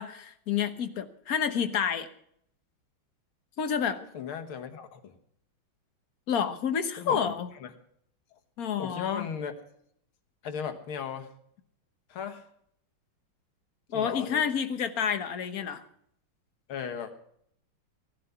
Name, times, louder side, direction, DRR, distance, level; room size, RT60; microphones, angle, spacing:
voice 1, 0.0-2.1 3.6-4.0 6.3-7.5 8.6-9.2 13.9-15.8, left 7 dB, 50° left, 10 dB, 1.3 m, -29 dB
voice 2, 4.1-5.1 7.0-7.3 7.6-7.7 8.8-9.5 10.4-11.3 12.1-12.5 13.9-14.4 16.7-17.1, left 7 dB, 80° left, 6 dB, 2.3 m, -36 dB
17.0 x 11.5 x 5.7 m, 0.69 s
omnidirectional pair, 2.3 m